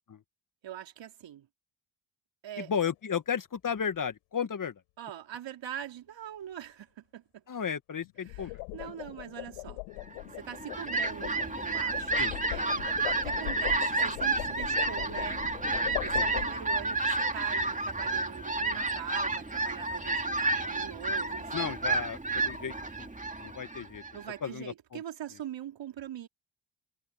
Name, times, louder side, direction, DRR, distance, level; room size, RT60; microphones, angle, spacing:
voice 1, 0.6-1.5 2.4-2.7 5.0-7.4 8.3-9.8 10.3-12.2 12.5-15.4 16.0-21.8 24.1-26.3, right 10 dB, 65° right, 4.3 m, -43 dB
sound 1, 2.6-2.9 8.0-16.9, left 28 dB, 85° left, 7.7 m, -40 dB
voice 2, 2.6-4.8 7.5-8.6 12.2-12.4 12.7-12.8 16.1-16.3 21.5-23.1 23.4-24.0 24.4-25.0, left 7 dB, 40° left, 1.9 m, -34 dB
Fowl, 10.3-24.3, right 2 dB, 15° right, 2.5 m, -31 dB
hypercardioid pair, 50°, 48 cm